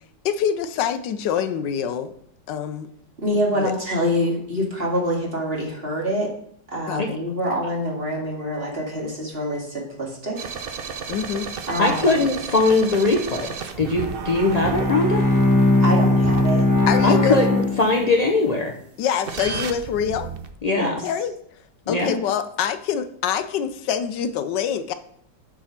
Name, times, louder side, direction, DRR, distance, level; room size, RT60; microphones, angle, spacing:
voice 1, 0.2-2.1 2.5-2.9 3.3-3.7 6.9-7.2 11.1-11.5 16.9-17.4 19.0-20.3 21.0-21.4 21.9-24.9, left 8 dB, 80° left, 10 dB, 1.3 m, -25 dB
voice 2, 3.2-6.3 6.7-10.4 11.7-12.2 15.8-16.7 20.7-21.0, equal, 35° right, -2 dB, 2.2 m, -25 dB
sound 1, 10.3-17.8 19.3-20.5, right 6 dB, 90° right, 0.5 m, -33 dB
voice 3, 11.8-15.2 17.0-18.7 20.6-20.9 21.9-22.2, left 3 dB, 60° left, 1 dB, 0.4 m, -21 dB
Bowed string instrument, 14.4-18.5, left 1 dB, 15° left, 0.8 m, -20 dB
7.2 x 5.1 x 5.8 m, 0.68 s
omnidirectional pair, 1.9 m